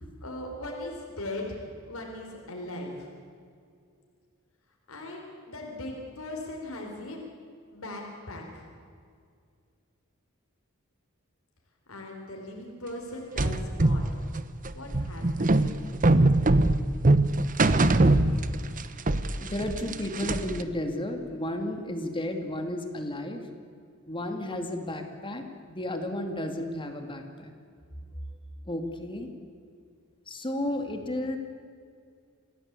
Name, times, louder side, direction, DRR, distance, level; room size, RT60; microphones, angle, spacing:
voice 1, 0.2-3.1 4.9-7.2 7.7-8.7 11.9-14.2 14.7-15.6, left 1 dB, 80° left, 1 dB, 4.3 m, -39 dB
sound 1, 13.4-18.8 19.1-20.6, right 2 dB, 40° right, 1.0 m, -22 dB
voice 2, 17.8-18.4 19.3-23.5 24.1-27.5 28.7-29.3 30.3-31.4, left 1 dB, 25° left, 5 dB, 2.3 m, -33 dB
28.0 x 17.0 x 8.3 m, 2.3 s
head